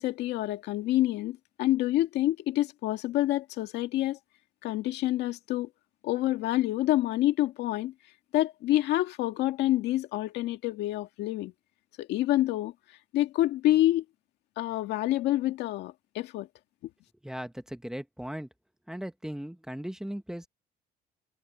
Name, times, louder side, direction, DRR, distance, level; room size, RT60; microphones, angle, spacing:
voice 1, 0.0-4.2 4.6-5.7 6.0-7.9 8.3-11.5 12.0-12.7 13.1-14.0 14.6-16.5, left 15 dB, 85° left, 2.0 m, -27 dB
voice 2, 17.2-18.5 18.9-20.5, equal, 5° right, 1.3 m, -37 dB
cardioid pair, 110°, 17 cm